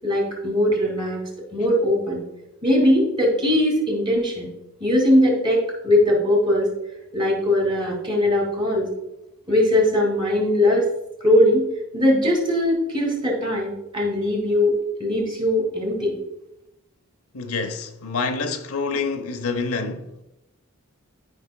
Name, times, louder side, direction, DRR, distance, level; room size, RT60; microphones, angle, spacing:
voice 1, 0.0-1.2 1.5-2.2 2.6-4.5 4.8-6.7 7.1-8.9 9.5-10.8 11.2-11.7 11.9-14.7 15.0-16.1, left 1 dB, 20° right, 2.3 m, -20 dB
voice 2, 17.3-20.2, left 4 dB, 85° left, 0.8 m, -27 dB
12.0 x 5.6 x 2.2 m
head